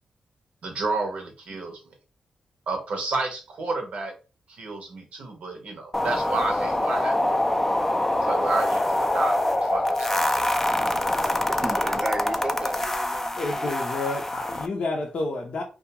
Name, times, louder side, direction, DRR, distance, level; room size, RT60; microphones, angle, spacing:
voice 1, 0.6-1.8 2.7-4.1 4.5-7.3 8.2-10.5, right 3 dB, 75° right, 0.7 m, -31 dB
sound 1, 5.9-14.7, left 1 dB, 15° left, 0.4 m, -25 dB
voice 2, 11.5-14.0, right 2 dB, 35° right, 0.5 m, -35 dB
voice 3, 13.1-15.6, left 2 dB, 65° left, 0.6 m, -30 dB
2.3 x 2.2 x 2.8 m
cardioid pair, 70°, 2 cm